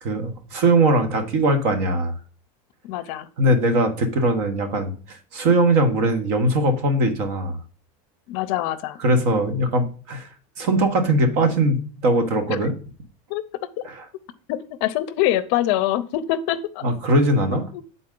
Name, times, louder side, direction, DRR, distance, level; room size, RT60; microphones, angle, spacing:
voice 1, 0.0-2.1 3.4-7.6 9.0-10.3 10.6-12.7 13.9-14.0 16.8-17.7, right 1 dB, 55° right, 6 dB, 1.3 m, -20 dB
voice 2, 2.8-3.3 8.3-9.0 12.5-12.6 13.3-13.4 14.5-16.8 17.7-17.8, left 13 dB, 50° left, 15 dB, 0.5 m, -24 dB
8.8 x 4.0 x 3.8 m, 0.39 s
supercardioid pair, 175°, 18 cm